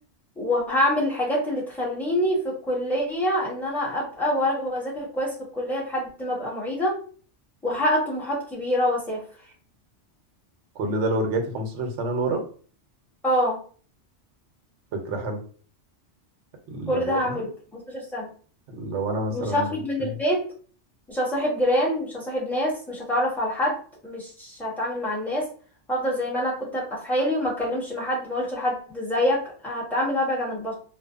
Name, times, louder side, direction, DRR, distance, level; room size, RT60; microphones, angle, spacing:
voice 1, 0.4-6.9 7.6-9.2 13.2-13.6 16.9-18.3 19.3-20.4 21.1-23.8 24.0-25.5 25.9-30.7, equal, ahead, -6 dB, 0.9 m, -26 dB
voice 2, 10.7-12.4 14.9-15.4 16.7-17.5 18.7-20.2, right 2 dB, 75° right, 4 dB, 1.0 m, -28 dB
2.6 x 2.2 x 2.3 m, 0.43 s
omnidirectional pair, 1.2 m